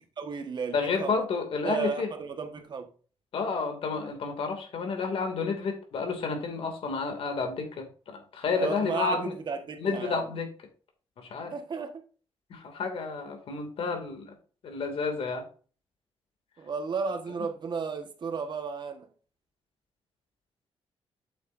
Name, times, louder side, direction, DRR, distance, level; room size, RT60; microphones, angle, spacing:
voice 1, 0.2-1.2 1.6-2.9 8.6-10.2 11.5-12.0 16.6-19.1, right 5 dB, 50° right, 1.5 m, -33 dB
voice 2, 0.7-2.1 3.3-9.3 9.8-10.5 11.2-11.5 12.5-14.3 14.6-15.4, left 4 dB, 70° left, 2.6 m, -30 dB
8.4 x 8.0 x 2.7 m
wide cardioid pair, 140°, 10 cm